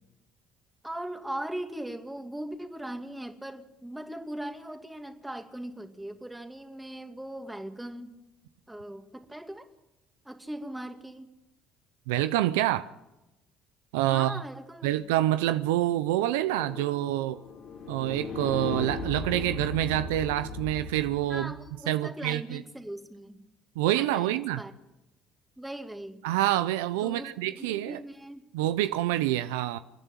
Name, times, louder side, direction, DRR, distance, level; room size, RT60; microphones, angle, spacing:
voice 1, 0.8-8.1 8.7-9.7 10.2-11.3 14.1-15.1 21.3-23.4 23.9-24.7 25.6-26.2 27.0-28.5, right 1 dB, 10° right, 2.6 m, -39 dB
voice 2, 12.1-12.9 13.9-14.4 14.8-17.4 17.9-21.5 21.9-22.6 23.8-24.6 26.2-28.0 28.5-29.8, right 14 dB, 85° right, 0.6 m, -27 dB
sound 1, 15.9-21.5, left 3 dB, 65° left, 4.5 m, -38 dB
28.5 x 10.5 x 9.1 m
hypercardioid pair, 65°, 0 cm